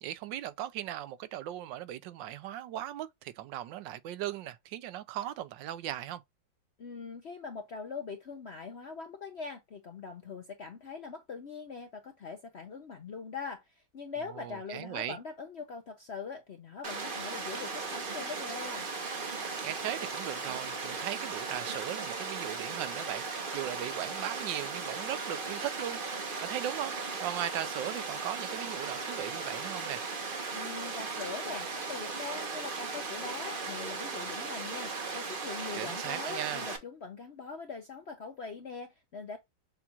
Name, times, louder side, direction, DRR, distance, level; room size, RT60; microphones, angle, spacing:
voice 1, 0.0-6.2 14.3-15.2 19.6-26.0 26.4-30.1 35.7-36.6, right 12 dB, 75° right, 1.2 m, -38 dB
voice 2, 6.8-13.6 13.9-18.9 30.5-39.4, left 5 dB, 65° left, 0.6 m, -42 dB
Water, 16.8-36.8, right 4 dB, 35° right, 0.9 m, -37 dB
7.1 x 2.4 x 2.8 m
omnidirectional pair, 2.1 m